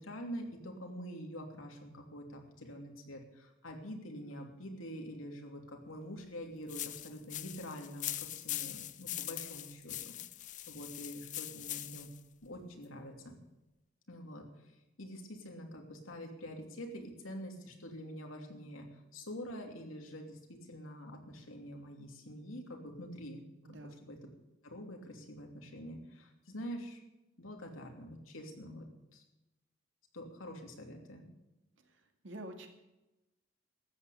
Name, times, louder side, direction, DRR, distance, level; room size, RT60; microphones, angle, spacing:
voice 1, 0.0-12.1 12.4-13.4 14.1-18.9 19.1-23.4 23.7-24.2 24.6-27.0 27.4-28.9 29.1-29.2 30.1-31.2, equal, 90° left, 3 dB, 2.9 m, -46 dB
sound 1, 6.7-12.2, left 14 dB, 40° left, 0.5 m, -42 dB
voice 2, 23.6-24.0 32.2-32.7, right 1 dB, 65° right, 4 dB, 2.2 m, -46 dB
13.5 x 8.8 x 8.5 m, 0.97 s
head